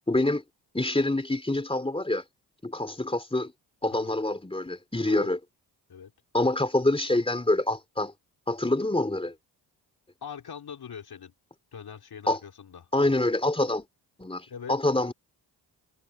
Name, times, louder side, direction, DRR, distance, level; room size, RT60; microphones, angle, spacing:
voice 1, 0.1-0.4 0.7-2.2 2.6-3.5 3.8-5.4 6.3-8.1 8.5-9.3 12.3-12.4 12.9-13.8 14.2-15.1, left 2 dB, 10° left, 3.3 m, -26 dB
voice 2, 10.2-11.3 11.7-12.9 14.5-14.8, left 7 dB, 60° left, 3.5 m, -41 dB
supercardioid pair, 50°, 43 cm